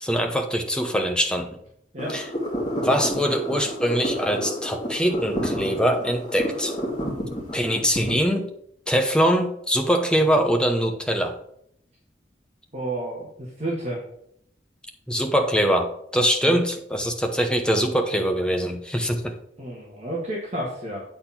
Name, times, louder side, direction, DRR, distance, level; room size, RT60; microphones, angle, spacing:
voice 1, 0.0-1.5 2.1-2.2 2.8-6.8 7.5-8.5 8.9-11.4 15.1-19.3, equal, 5° left, 4 dB, 0.9 m, -23 dB
voice 2, 1.9-2.2 12.7-14.0 16.4-16.6 19.6-21.0, right 1 dB, 40° right, -4 dB, 1.6 m, -31 dB
sound 1, 2.0-8.1, equal, 30° left, 2.1 m, -30 dB
8.6 x 4.2 x 5.7 m, 0.71 s
head